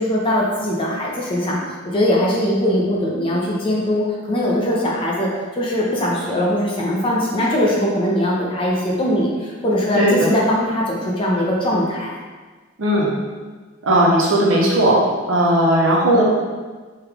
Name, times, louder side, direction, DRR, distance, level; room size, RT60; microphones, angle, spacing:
voice 1, 0.0-5.3 5.5-12.1, left 1 dB, 25° left, -3 dB, 0.5 m, -21 dB
voice 2, 9.9-10.3 12.8-13.1 13.8-15.0 15.3-16.2, right 1 dB, 70° right, -3 dB, 0.7 m, -16 dB
3.4 x 2.3 x 3.3 m, 1.4 s
head